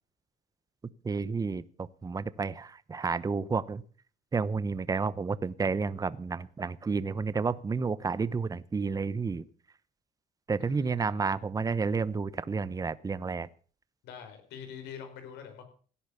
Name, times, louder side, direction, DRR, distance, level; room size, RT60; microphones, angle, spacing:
voice 1, 1.0-3.8 4.3-9.4 10.5-13.5, right 4 dB, 20° right, 17 dB, 0.8 m, -31 dB
voice 2, 10.6-11.2 14.0-15.6, left 7 dB, 85° left, 8 dB, 4.6 m, -45 dB
16.5 x 10.0 x 7.0 m, 0.42 s
cardioid pair, 110°, 17 cm